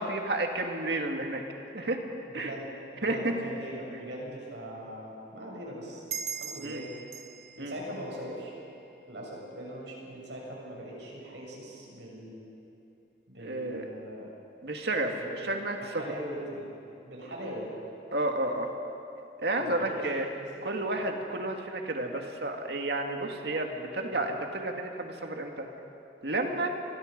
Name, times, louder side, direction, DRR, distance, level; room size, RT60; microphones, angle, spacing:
voice 1, 0.0-1.4 1.7-2.0 2.3-2.5 3.0-3.3 6.6-6.8 7.6-7.7 13.4-13.8 14.6-16.0 18.1-18.7 19.4-20.3 20.6-25.7 26.2-26.7, right 2 dB, 70° right, 3 dB, 2.2 m, -31 dB
voice 2, 2.3-2.7 2.9-6.1 6.3-6.9 7.6-8.6 9.1-12.5 13.3-14.3 15.2-15.5 15.8-16.8 17.0-17.7 19.6-20.7 21.0-21.2 24.1-24.2, equal, 90° right, -3 dB, 7.4 m, -41 dB
sound 1, 6.1-9.2, right 7 dB, 40° right, 0.9 m, -41 dB
28.5 x 22.0 x 5.4 m, 2.8 s
head